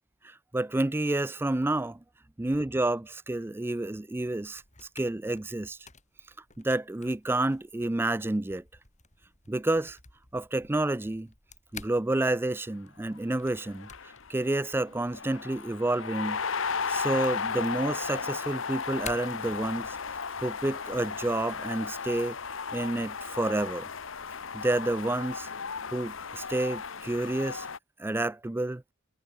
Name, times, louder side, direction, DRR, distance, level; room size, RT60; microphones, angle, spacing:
voice 1, 0.2-2.0 2.4-4.6 5.0-5.8 6.6-8.6 9.5-10.0 10.3-11.3 11.7-13.9 14.3-16.4 16.9-20.0 20.4-22.4 22.7-23.9 24.5-25.5 25.9-27.7 28.0-28.8, right 2 dB, 10° right, 0.4 m, -29 dB
sound 1, 4.3-20.1, left 6 dB, 35° left, 6.6 m, -52 dB
sound 2, 13.2-13.3 13.5-27.8, left 5 dB, 65° left, 1.2 m, -35 dB
head